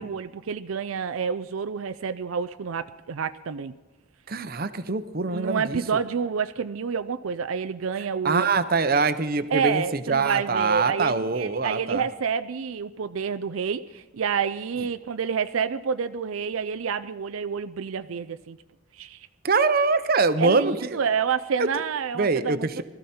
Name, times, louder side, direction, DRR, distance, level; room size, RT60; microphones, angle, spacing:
voice 1, 0.0-3.7 5.3-8.5 9.5-18.6 18.9-19.3 20.4-22.8, right 6 dB, 85° right, 11 dB, 0.5 m, -28 dB
voice 2, 4.3-6.0 8.2-12.0 19.4-21.0 21.6-21.7 22.1-22.8, right 4 dB, 45° right, 12 dB, 0.8 m, -24 dB
20.5 x 14.0 x 4.3 m, 1.2 s
head